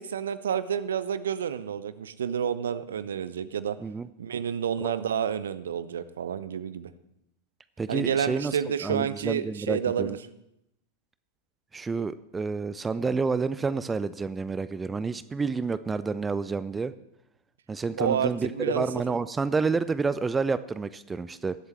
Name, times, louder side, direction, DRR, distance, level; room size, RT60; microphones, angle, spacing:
voice 1, 0.0-3.8 4.2-6.9 7.9-10.2 18.0-19.2, right 8 dB, 65° right, 15 dB, 0.6 m, -29 dB
voice 2, 7.8-8.6 8.8-10.2 11.7-16.9 17.7-21.6, right 4 dB, 15° right, 15 dB, 0.4 m, -29 dB
20.5 x 8.1 x 3.2 m, 0.82 s
figure-of-eight pair, 90°, 0 cm